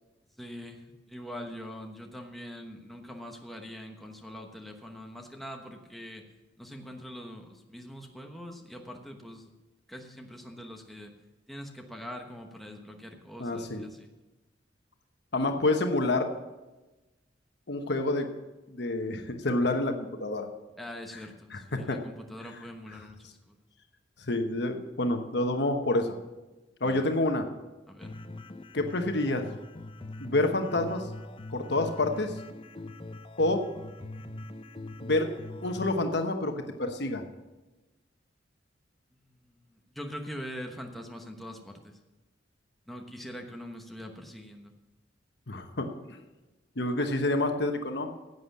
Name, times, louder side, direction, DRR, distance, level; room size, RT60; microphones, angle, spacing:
voice 1, 0.4-6.2 6.6-9.5 9.9-11.1 11.5-14.1 20.8-23.6 26.8-27.1 27.9-28.2 39.2-42.0 42.9-44.7, equal, ahead, 2 dB, 1.0 m, -43 dB
voice 2, 13.4-13.8 15.3-16.3 17.7-18.3 18.7-20.5 21.5-22.0 24.3-26.2 26.8-27.4 28.7-29.4 30.2-31.0 31.5-32.3 33.4-33.6 35.0-35.3 35.6-37.2 45.5-45.9 46.8-48.1, left 2 dB, 65° left, 5 dB, 1.1 m, -28 dB
sound 1, 28.0-36.0, left 2 dB, 30° left, 0.7 m, -42 dB
11.0 x 8.0 x 7.2 m, 1.1 s
head